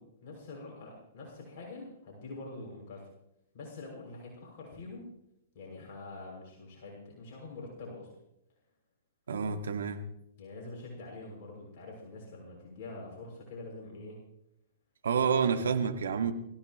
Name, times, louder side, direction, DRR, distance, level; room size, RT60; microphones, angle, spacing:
voice 1, 0.0-3.1 3.5-5.1 5.5-8.1 10.4-14.2, left 2 dB, 50° left, -1 dB, 6.5 m, -45 dB
voice 2, 9.3-10.0 15.0-16.3, right 6 dB, 75° right, 7 dB, 2.0 m, -28 dB
23.0 x 15.5 x 3.1 m, 0.80 s
hypercardioid pair, 115°, 0 cm